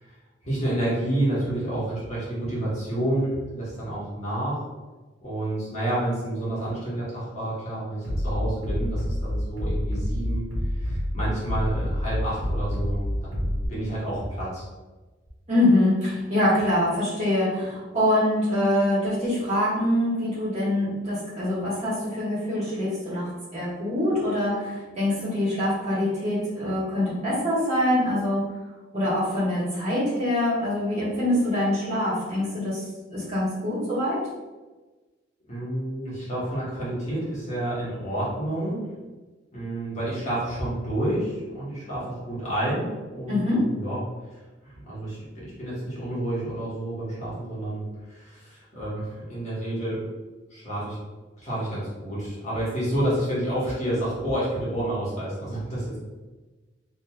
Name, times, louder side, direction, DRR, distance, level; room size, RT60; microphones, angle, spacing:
voice 1, 0.4-4.6 5.2-10.4 10.7-14.6 35.5-38.8 39.5-44.0 44.6-50.0 50.5-51.0 51.4-56.0, right 1 dB, 35° left, -9 dB, 1.1 m, -29 dB
Bass drum, 8.0-13.7, equal, 90° right, 1.1 m, -27 dB
voice 2, 15.5-28.4 28.9-32.8 33.1-34.2 43.3-43.6, left 1 dB, 35° right, -10 dB, 1.3 m, -24 dB
3.0 x 2.3 x 2.3 m, 1.2 s
head